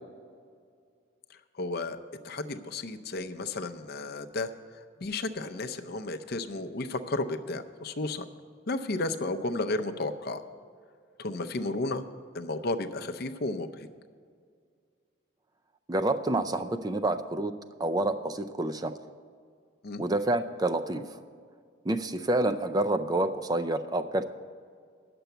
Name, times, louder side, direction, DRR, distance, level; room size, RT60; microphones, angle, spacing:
voice 1, 1.3-2.0 2.2-4.5 5.0-8.3 8.7-10.4 11.2-12.0 12.3-13.9 19.8-20.0, left 2 dB, 50° left, 8 dB, 0.6 m, -33 dB
voice 2, 15.9-17.5 17.8-18.9 20.0-21.0 21.8-24.3, right 2 dB, 20° right, 10 dB, 0.4 m, -28 dB
10.0 x 6.9 x 8.0 m, 2.1 s
head